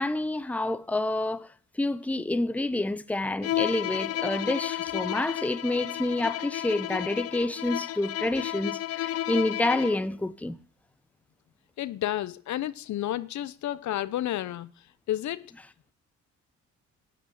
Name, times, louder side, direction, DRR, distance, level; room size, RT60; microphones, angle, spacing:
voice 1, 0.0-1.5 1.8-10.6, left 2 dB, 5° left, 0.7 m, -28 dB
Bowed string instrument, 3.4-10.1, left 13 dB, 55° left, 0.5 m, -32 dB
voice 2, 11.8-14.7 15.1-15.5, left 13 dB, 70° left, 0.9 m, -31 dB
12.5 x 6.7 x 9.2 m
cardioid pair, 90°, 30 cm